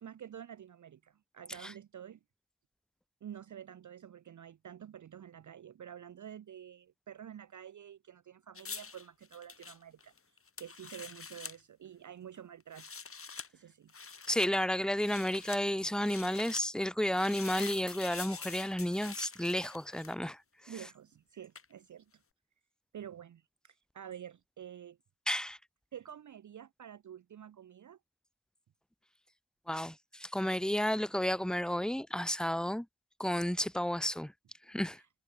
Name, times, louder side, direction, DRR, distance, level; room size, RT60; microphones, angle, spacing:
voice 1, 0.0-2.2 3.2-12.9 13.5-13.9 20.7-22.2 22.9-25.0 25.9-28.0 34.9-35.1, right 9 dB, 50° right, 0.5 m, -49 dB
sound 1, 8.5-11.6 12.6-13.5 13.9-14.5 15.0-15.6 16.0-16.6 17.1-20.3 21.5-21.7, left 5 dB, 35° left, 1.0 m, -45 dB
voice 2, 14.3-20.4 25.3-25.6 29.7-32.9 33.2-34.3 34.7-35.0, left 1 dB, ahead, 0.5 m, -32 dB
cardioid pair, 45°, 40 cm